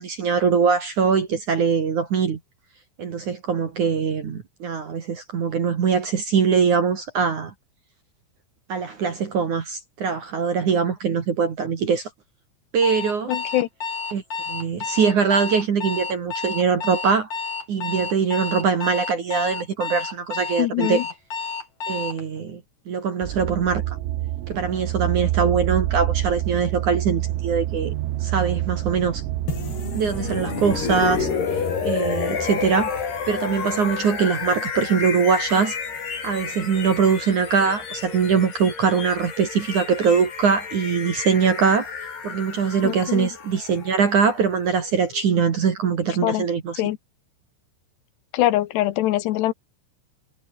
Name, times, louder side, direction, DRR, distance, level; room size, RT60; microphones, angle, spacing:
voice 1, 0.0-2.4 3.0-7.5 8.7-12.1 12.7-13.3 14.1-17.3 17.7-21.0 21.9-22.6 22.9-24.0 24.5-27.9 28.2-29.2 29.9-31.3 31.8-33.0 33.3-35.8 36.2-41.9 42.2-46.8, right 6 dB, 45° right, 3.0 m, -22 dB
Alarm, 12.8-22.2, left 4 dB, 35° left, 5.6 m, -30 dB
voice 2, 13.3-13.7 20.6-21.1 42.8-43.3 46.2-46.5 46.8-47.0 48.3-49.5, left 15 dB, 75° left, 2.7 m, -23 dB
sound 1, 23.2-31.3, right 15 dB, 80° right, 4.1 m, -27 dB
sound 2, 29.5-45.4, left 6 dB, 55° left, 6.8 m, -30 dB
omnidirectional pair, 5.9 m